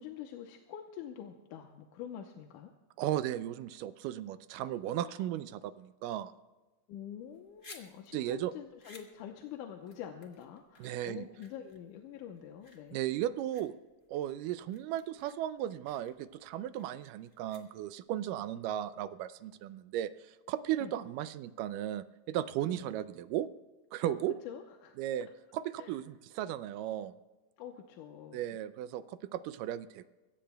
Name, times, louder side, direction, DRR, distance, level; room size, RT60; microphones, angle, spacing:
voice 1, 0.0-2.7 5.0-5.3 6.9-13.0 20.8-20.9 22.7-23.0 24.0-25.0 25.8-26.0 27.6-28.5, left 9 dB, 75° left, 3 dB, 2.3 m, -46 dB
voice 2, 3.0-6.3 8.1-8.5 10.8-11.3 12.9-13.7 14.1-23.5 23.9-24.4 25.0-25.3 25.5-27.1 28.3-30.1, right 12 dB, 80° right, 14 dB, 2.1 m, -36 dB
sound 1, 7.2-18.1, left 2 dB, 45° left, 0.6 m, -58 dB
22.5 x 16.5 x 2.3 m, 1.2 s
omnidirectional pair, 3.9 m